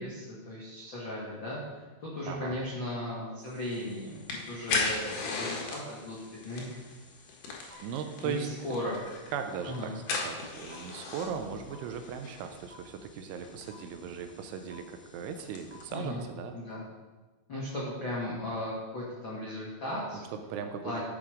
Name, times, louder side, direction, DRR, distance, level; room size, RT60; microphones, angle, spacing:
voice 1, 0.0-6.8 7.6-9.0 9.6-9.9 15.9-16.2 16.5-16.8 17.5-20.2 20.8-21.0, left 1 dB, 80° left, -6 dB, 1.0 m, -37 dB
voice 2, 2.3-2.6 7.8-8.7 9.3-16.6 20.3-21.0, right 7 dB, 80° right, 6 dB, 3.0 m, -38 dB
sound 1, 3.5-15.9, left 4 dB, 60° left, 2.2 m, -39 dB
sound 2, 7.7-7.8 8.7-8.8 9.7-9.8 10.7-10.8 11.7-11.8 12.7-12.8 13.7-13.8 14.7-14.8 15.7-15.8 16.7-16.8, right 1 dB, 35° left, 1.9 m, -52 dB
13.0 x 6.1 x 5.1 m, 1.2 s
omnidirectional pair, 5.7 m